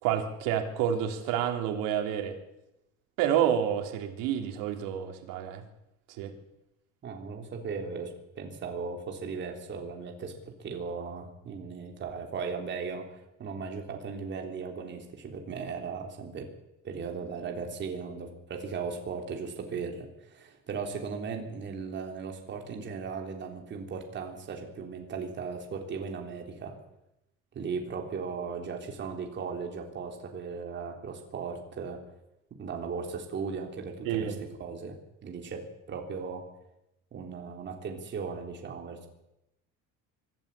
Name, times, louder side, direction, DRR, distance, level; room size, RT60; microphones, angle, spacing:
voice 1, 0.0-2.3 3.2-5.6 6.2-6.3 34.0-34.4, right 9 dB, 90° right, 5 dB, 3.4 m, -29 dB
voice 2, 7.0-16.5 16.8-26.7 27.5-32.0 32.6-35.0 35.2-35.6 35.9-36.4 37.1-39.1, right 5 dB, 35° right, 3 dB, 3.5 m, -37 dB
24.5 x 13.0 x 8.5 m, 0.87 s
cardioid pair, 155°, 33 cm